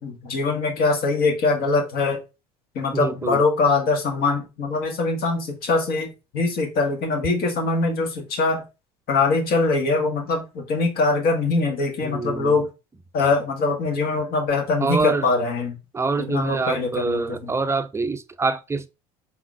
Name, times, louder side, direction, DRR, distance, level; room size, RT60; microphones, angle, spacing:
voice 1, 0.0-2.2 2.7-8.6 9.1-12.7 13.1-15.8 16.2-17.5, left 3 dB, 55° left, 1.7 m, -23 dB
voice 2, 2.9-3.4 12.0-12.6 14.8-15.3 15.9-18.9, right 3 dB, 15° right, 0.4 m, -25 dB
4.7 x 3.7 x 2.5 m
hypercardioid pair, 70°, 18 cm